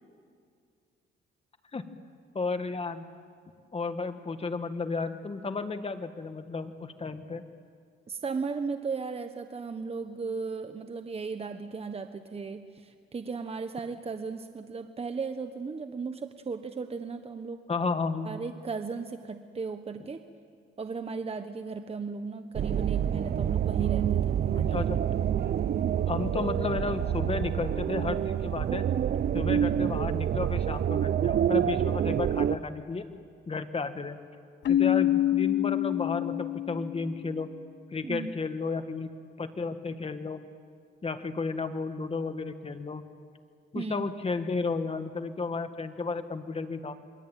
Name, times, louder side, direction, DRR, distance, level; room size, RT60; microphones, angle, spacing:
voice 1, 2.3-3.1 3.7-7.4 17.7-18.3 23.8-23.9 24.6-25.0 26.1-28.9 29.3-33.0 33.5-34.2 34.7-37.5 37.9-39.1 39.4-40.4 41.0-43.0 43.7-47.0, left 4 dB, 30° left, 8 dB, 2.0 m, -33 dB
voice 2, 8.1-17.6 18.2-20.2 20.8-24.9 38.0-38.3 43.7-44.1, right 4 dB, 30° right, 8 dB, 1.3 m, -36 dB
sound 1, 22.5-32.6, right 9 dB, 50° right, 0.8 m, -27 dB
Keyboard (musical), 34.7-37.3, left 13 dB, 65° left, 0.8 m, -26 dB
28.0 x 22.5 x 9.2 m, 2.2 s
cardioid pair, 90°, 20 cm